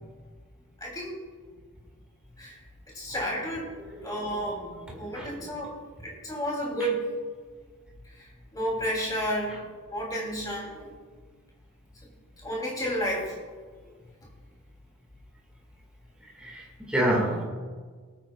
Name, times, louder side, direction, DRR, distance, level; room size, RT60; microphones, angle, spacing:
voice 1, 0.8-1.2 2.4-2.6 2.9-3.7 4.0-4.6 4.9-5.7 6.0-7.0 8.0-9.6 9.9-10.7 12.4-13.4, equal, 15° left, -3 dB, 3.3 m, -31 dB
voice 2, 3.8-5.5 10.6-10.9 16.4-17.4, right 1 dB, 5° right, -2 dB, 2.1 m, -31 dB
22.0 x 9.4 x 2.5 m, 1.5 s
head